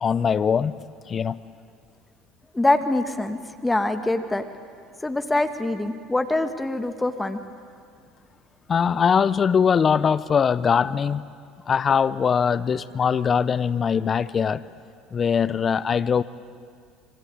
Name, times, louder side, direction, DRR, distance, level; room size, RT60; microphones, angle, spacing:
voice 1, 0.0-0.7 1.1-1.4 8.7-11.2 11.7-14.6 15.1-16.2, left 7 dB, 35° left, 16 dB, 0.9 m, -21 dB
voice 2, 2.5-4.5 5.0-7.4, left 2 dB, 10° left, 8 dB, 1.9 m, -24 dB
27.0 x 25.0 x 8.8 m, 2.2 s
hypercardioid pair, 70°, 0 cm